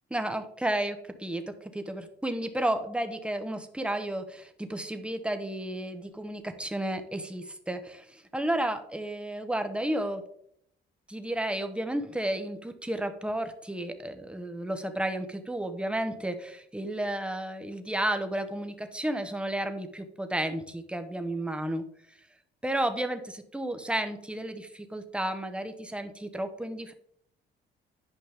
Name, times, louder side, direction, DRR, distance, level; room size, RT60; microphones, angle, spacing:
voice 1, 0.1-10.2 11.1-21.8 22.6-26.9, right 1 dB, 5° right, 7 dB, 1.1 m, -32 dB
10.5 x 5.4 x 3.5 m, 0.69 s
cardioid pair, 90°, 20 cm